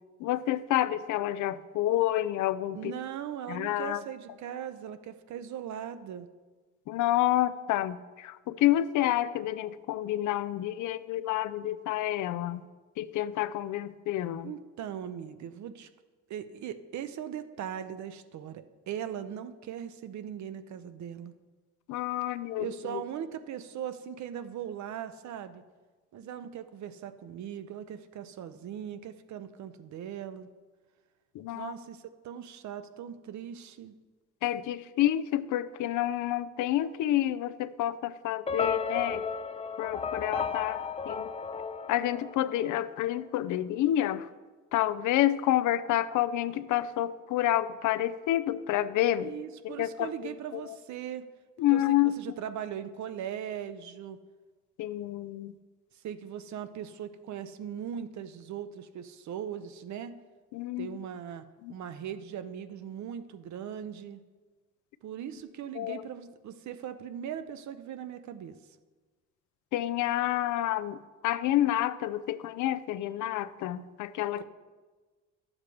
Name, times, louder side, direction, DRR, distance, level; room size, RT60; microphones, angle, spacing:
voice 1, 0.2-2.9 3.5-4.0 6.9-12.6 13.0-14.5 21.9-23.0 31.3-31.7 34.4-39.2 39.8-40.8 41.1-41.3 41.9-44.3 44.7-49.3 49.6-50.8 51.6-52.2 54.8-55.5 60.5-61.0 61.6-61.7 65.7-66.0 69.7-74.4, left 13 dB, 80° left, 14 dB, 0.5 m, -29 dB
voice 2, 2.7-6.3 14.4-15.9 16.3-21.3 22.6-25.6 26.1-30.5 31.5-33.9 49.2-51.3 51.7-54.2 55.9-60.1 60.8-64.2 65.0-68.6 74.4-74.5, right 9 dB, 70° right, 11 dB, 0.7 m, -39 dB
sound 1, 38.5-42.8, left 5 dB, 20° left, 0.4 m, -34 dB
12.0 x 7.3 x 3.3 m, 1.3 s
cardioid pair, 90°, 30 cm